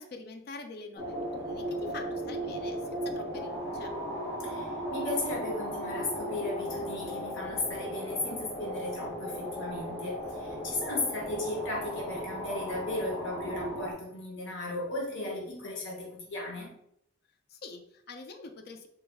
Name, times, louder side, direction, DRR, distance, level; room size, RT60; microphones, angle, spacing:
voice 1, 0.0-3.9 17.5-18.9, left 3 dB, 50° left, 5 dB, 0.4 m, -45 dB
sound 1, 1.0-13.9, equal, 15° left, 1.0 m, -36 dB
voice 2, 4.4-16.7, left 2 dB, 65° left, -3 dB, 0.9 m, -36 dB
3.2 x 2.2 x 3.4 m, 0.75 s
head